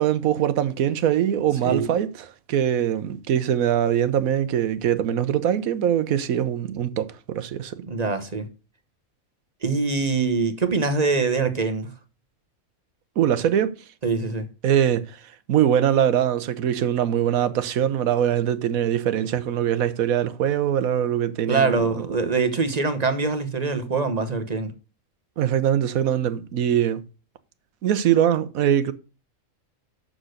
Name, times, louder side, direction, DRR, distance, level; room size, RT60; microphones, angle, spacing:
voice 1, 0.0-7.8 13.2-13.7 14.6-15.2 15.5-21.8 25.4-27.0 27.8-28.9, right 10 dB, 80° right, 1.2 m, -22 dB
voice 2, 7.8-8.5 9.6-11.9 14.0-14.4 21.5-24.7, right 4 dB, 30° right, 1.0 m, -24 dB
6.6 x 6.3 x 6.5 m
omnidirectional pair, 1.5 m